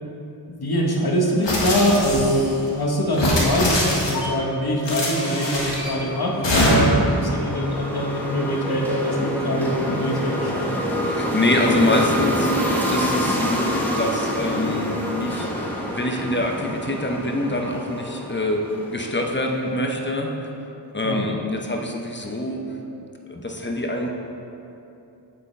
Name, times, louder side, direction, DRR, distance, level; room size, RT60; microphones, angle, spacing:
voice 1, 0.5-10.7 21.0-21.3, equal, 60° left, -1 dB, 1.3 m, -23 dB
sound 1, 1.4-2.5 3.1-4.3 4.8-5.9 6.4-7.1, left 1 dB, 85° left, 1.6 m, -22 dB
sound 2, 5.1-19.4, equal, 5° left, 1.3 m, -27 dB
voice 2, 11.1-12.5 12.9-15.5 15.9-18.6 18.9-20.3 20.9-22.6 23.3-24.1, left 1 dB, 25° left, 1 dB, 0.9 m, -25 dB
8.1 x 7.7 x 3.3 m, 2.8 s
cardioid pair, 50°, 43 cm